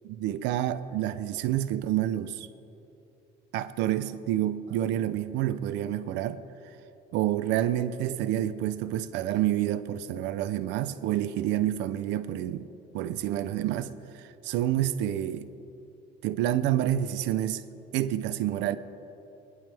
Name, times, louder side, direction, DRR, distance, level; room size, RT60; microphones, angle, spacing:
voice 1, 0.0-2.5 3.5-6.4 7.1-12.7 12.9-15.5 16.2-17.6 17.9-18.8, right 12 dB, 85° right, 0.7 m, -28 dB
26.5 x 11.0 x 3.5 m
cardioid pair, 145°, 18 cm